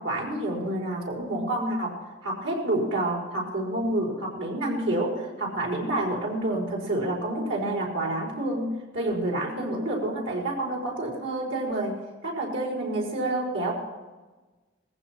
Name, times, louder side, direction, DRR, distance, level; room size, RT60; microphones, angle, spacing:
voice 1, 0.0-13.8, right 1 dB, 80° right, -2 dB, 5.1 m, -28 dB
19.5 x 15.0 x 4.5 m, 1.2 s
head